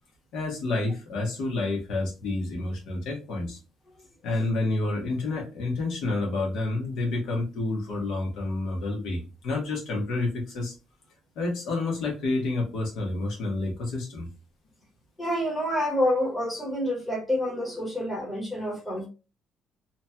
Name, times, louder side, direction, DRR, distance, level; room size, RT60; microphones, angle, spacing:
voice 1, 0.3-3.6 4.2-10.7 11.3-14.3, left 2 dB, 70° left, 1.1 m, -29 dB
voice 2, 15.2-19.1, left 1 dB, 5° left, 1.0 m, -28 dB
2.9 x 2.3 x 2.7 m
cardioid pair, 165°, 0 cm